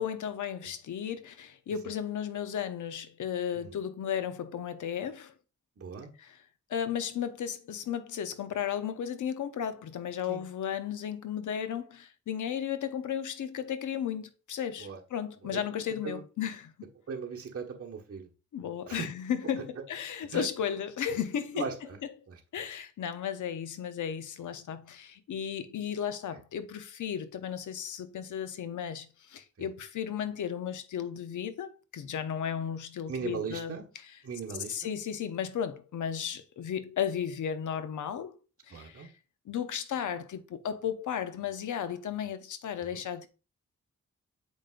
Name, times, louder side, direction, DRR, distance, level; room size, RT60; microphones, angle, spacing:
voice 1, 0.0-5.3 6.2-6.3 6.7-16.7 18.5-21.6 22.5-33.8 34.7-38.4 38.7-39.1 39.5-43.3, left 8 dB, 85° left, 0.8 m, -34 dB
voice 2, 5.8-6.1 10.3-10.4 14.8-15.0 15.4-15.6 16.0-16.2 17.1-18.3 18.9-19.1 19.6-19.7 20.3-20.5 21.5-22.0 22.3-22.4 26.3-26.4 29.6-29.7 33.1-33.9 34.2-34.9 38.7-39.1 42.8-43.0, right 6 dB, 50° right, 1.4 m, -39 dB
7.2 x 5.2 x 2.5 m
cardioid pair, 90°, 30 cm